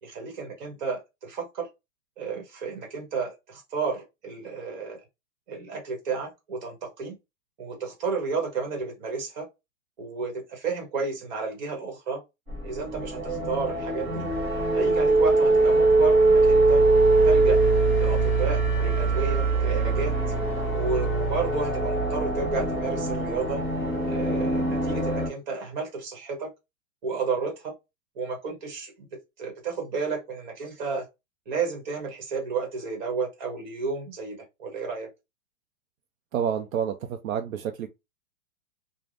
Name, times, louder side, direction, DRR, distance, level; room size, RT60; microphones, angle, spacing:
voice 1, 0.0-1.7 2.2-5.0 5.5-7.2 7.6-9.5 10.0-12.2 12.6-14.3 14.7-16.8 17.2-17.6 18.0-20.2 20.7-23.6 24.1-26.5 27.0-27.8 28.1-29.1 29.4-31.0 31.5-35.1, right 4 dB, 30° right, 1.0 m, -32 dB
sound 1, 12.5-25.3, right 3 dB, 10° right, 0.5 m, -22 dB
voice 2, 36.3-37.9, right 8 dB, 70° right, 0.5 m, -29 dB
3.3 x 2.1 x 2.4 m
hypercardioid pair, 175°, 44 cm